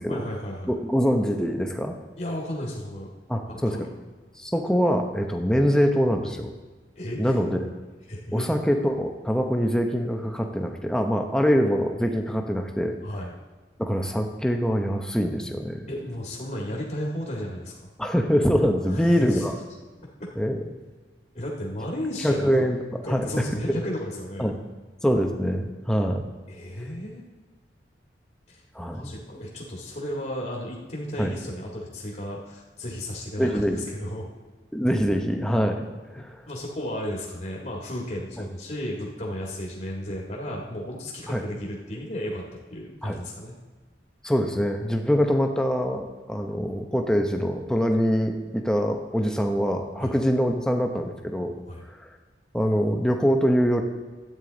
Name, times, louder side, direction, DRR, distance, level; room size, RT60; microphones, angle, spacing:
voice 1, 0.1-0.7 2.2-3.1 3.5-3.9 7.0-7.4 8.1-8.5 13.0-13.3 15.9-17.7 18.9-19.5 20.2-20.3 21.3-22.6 23.0-24.5 26.5-27.2 28.5-28.6 28.9-34.2 36.2-42.4 42.7-43.5 50.0-50.2 51.7-51.8, left 1 dB, 40° left, -2 dB, 1.8 m, -34 dB
voice 2, 0.7-1.9 3.3-3.8 4.4-6.5 7.2-7.7 8.3-13.0 13.8-15.9 18.0-19.6 20.4-20.6 22.2-22.8 23.1-23.8 24.4-24.6 25.0-26.2 28.7-29.1 31.2-31.3 33.4-33.9 34.7-35.9 36.1-36.4 41.3-41.4 43.0-43.2 44.2-51.6 52.0-52.1 52.5-53.8, equal, 5° left, 3 dB, 0.8 m, -24 dB
12.5 x 9.0 x 4.0 m, 1.3 s
head